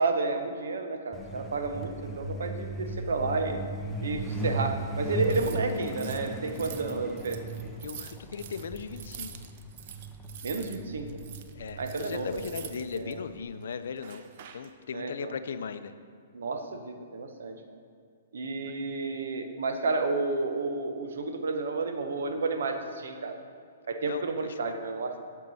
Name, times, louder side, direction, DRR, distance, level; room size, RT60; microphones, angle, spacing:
voice 1, 0.0-3.6 4.0-7.4 10.4-11.1 11.8-12.5 12.8-13.2 14.9-15.3 16.3-17.6 18.3-23.3 23.9-25.1, right 3 dB, 75° right, 6 dB, 0.9 m, -31 dB
Truck, 1.1-13.4, right 1 dB, 5° left, 0.7 m, -37 dB
sound 1, 5.2-10.8 11.1-13.1 14.0-14.7, right 9 dB, 55° right, 0.6 m, -46 dB
voice 2, 7.8-9.3 11.5-14.2 14.5-15.9 18.6-18.7 24.1-24.2 24.6-24.7, left 6 dB, 75° left, 11 dB, 0.5 m, -37 dB
13.0 x 4.6 x 4.1 m, 2.2 s
hypercardioid pair, 130°, 0 cm